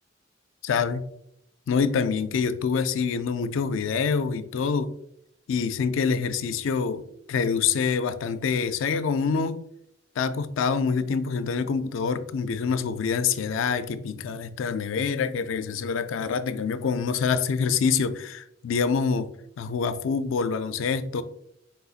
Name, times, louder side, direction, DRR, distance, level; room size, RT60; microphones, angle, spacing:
voice 1, 0.6-1.0 1.7-4.9 5.5-9.6 10.2-19.3 19.6-21.2, left 5 dB, 80° left, 0.4 m, -26 dB
4.3 x 3.9 x 2.4 m
head